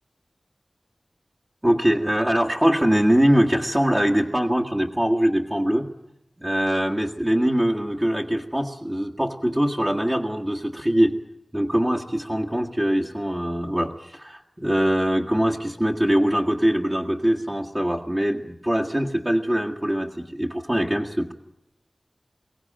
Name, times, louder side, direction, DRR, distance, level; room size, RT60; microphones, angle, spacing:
voice 1, 1.6-5.9 6.4-11.1 11.5-21.3, equal, 25° right, -1 dB, 1.7 m, -22 dB
22.5 x 17.5 x 8.9 m, 0.81 s
wide cardioid pair, 50°, 0 cm